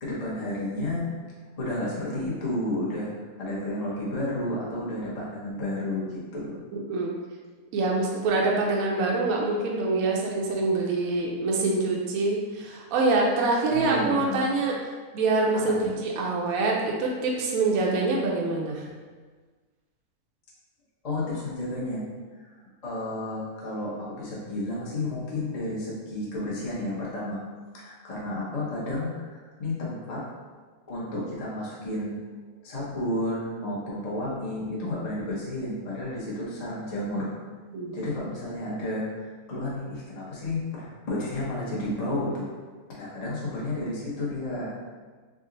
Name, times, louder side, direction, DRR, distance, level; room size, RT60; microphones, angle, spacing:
voice 1, 0.0-1.1 1.6-3.1 3.4-6.6 13.7-14.4 15.5-16.0 21.0-22.0 22.4-22.5 22.8-27.4 27.7-30.2 30.9-32.1 32.6-37.3 37.9-42.5 42.9-44.7, left 1 dB, 35° left, -6 dB, 0.6 m, -31 dB
voice 2, 6.7-7.1 7.7-14.7 15.1-18.8 37.7-37.9, right 3 dB, 70° right, -1 dB, 0.9 m, -25 dB
3.7 x 2.0 x 3.7 m, 1.4 s
omnidirectional pair, 1.6 m